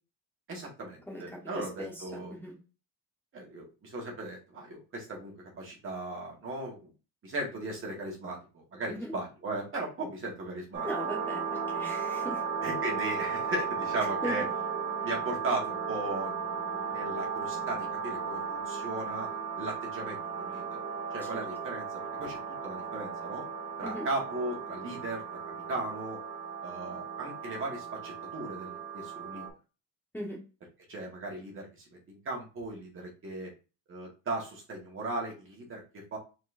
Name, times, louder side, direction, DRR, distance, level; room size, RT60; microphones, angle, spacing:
voice 1, 0.5-2.4 3.3-6.9 7.2-10.9 12.6-14.5 15.0-19.3 19.6-20.8 21.1-23.5 23.8-25.4 25.7-26.2 26.6-29.5 30.9-33.5 33.9-36.2, right 2 dB, 35° right, -1 dB, 1.8 m, -37 dB
voice 2, 1.8-2.5 8.9-9.1 10.8-12.4 14.2-14.4 21.3-21.4 23.8-24.1 30.1-30.4, equal, 5° left, -3 dB, 1.4 m, -38 dB
sound 1, 10.7-29.5, right 6 dB, 55° right, 2.0 m, -35 dB
4.3 x 4.2 x 2.7 m, 0.31 s
cardioid pair, 155°, 35 cm